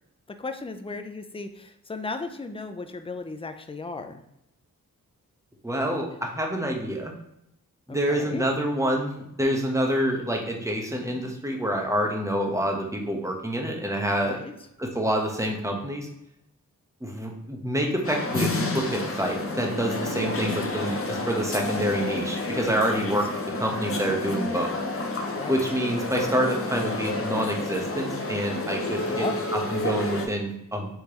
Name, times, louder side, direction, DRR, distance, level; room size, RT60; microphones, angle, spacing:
voice 1, 0.3-4.2 7.9-8.5 14.2-14.5 22.9-23.2 25.4-25.6 29.1-29.4, left 3 dB, 15° left, 7 dB, 0.5 m, -35 dB
voice 2, 5.6-7.1 7.9-14.4 14.8-16.1 17.0-23.3 23.6-24.7 25.5-29.3 29.7-30.9, equal, 10° right, 1 dB, 1.0 m, -27 dB
sound 1, 18.0-30.3, left 2 dB, 40° left, 0.8 m, -30 dB
4.8 x 3.3 x 3.0 m, 0.80 s
cardioid pair, 55°, 35 cm